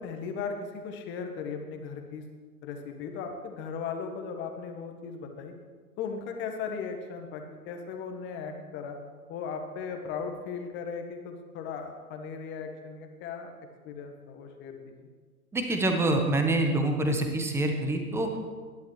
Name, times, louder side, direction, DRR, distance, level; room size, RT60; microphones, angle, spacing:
voice 1, 0.0-2.2 2.6-5.5 6.0-9.0 9.3-13.5 13.8-15.0, left 5 dB, 25° left, 4 dB, 1.4 m, -37 dB
voice 2, 15.5-18.4, right 2 dB, 5° right, 4 dB, 1.0 m, -26 dB
21.0 x 11.0 x 3.2 m, 1.5 s
figure-of-eight pair, 115°, 46 cm